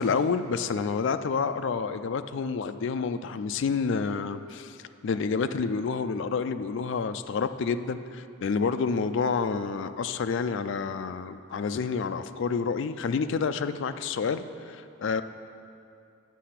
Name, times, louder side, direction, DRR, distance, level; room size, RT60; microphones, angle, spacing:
voice 1, 0.0-4.8 5.0-15.2, left 5 dB, 55° left, 10 dB, 0.3 m, -29 dB
8.3 x 6.7 x 5.8 m, 2.6 s
head